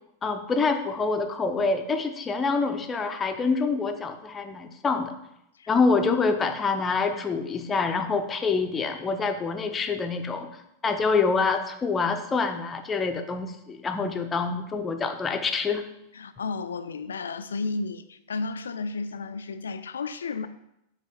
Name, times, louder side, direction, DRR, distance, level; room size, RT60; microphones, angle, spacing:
voice 1, 0.2-5.1 5.7-10.5 10.8-15.8, left 4 dB, 20° left, 6 dB, 0.7 m, -26 dB
voice 2, 16.1-20.5, left 4 dB, 70° left, 11 dB, 0.4 m, -33 dB
8.0 x 3.0 x 4.3 m, 0.82 s
figure-of-eight pair, 90°, 0 cm